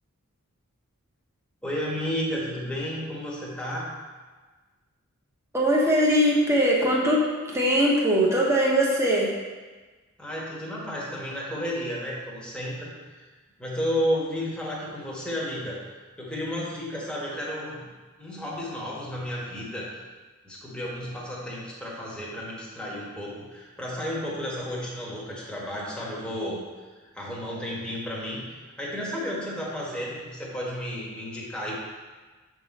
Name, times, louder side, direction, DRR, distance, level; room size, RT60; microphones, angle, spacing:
voice 1, 1.6-3.9 10.2-13.2 13.6-15.8 16.2-17.9 18.2-20.0 20.4-26.6 27.0-28.4 28.8-31.8, equal, 5° left, -5 dB, 1.2 m, -32 dB
voice 2, 5.5-9.3, equal, 15° right, -4 dB, 1.0 m, -21 dB
6.8 x 3.7 x 4.1 m, 1.3 s
head